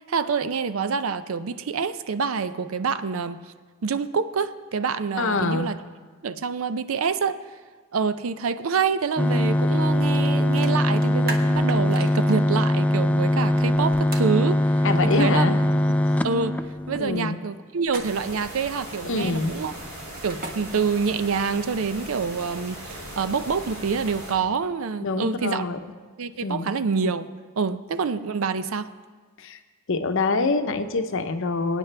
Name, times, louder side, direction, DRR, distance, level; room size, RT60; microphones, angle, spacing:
voice 1, 0.1-3.4 3.8-5.8 6.2-7.4 7.9-14.6 15.0-15.5 16.2-16.6 16.9-19.7 20.2-25.7 26.2-27.3 27.6-28.9, right 5 dB, 70° right, 12 dB, 0.5 m, -26 dB
voice 2, 5.2-5.7 14.8-15.6 17.0-17.4 19.0-19.5 25.0-25.8 26.4-26.7 29.4-29.6 29.9-31.8, left 3 dB, 65° left, 8 dB, 0.7 m, -25 dB
sound 1, 9.2-17.2, left 1 dB, 5° left, 0.3 m, -22 dB
sound 2, 10.1-10.3 10.6-12.4 14.1-14.3 17.8-18.4 20.1-20.5 21.9-22.8, right 3 dB, 45° right, 1.2 m, -37 dB
sound 3, 18.0-24.3, right 1 dB, 85° right, 4.8 m, -39 dB
23.5 x 9.1 x 3.3 m, 1.5 s
head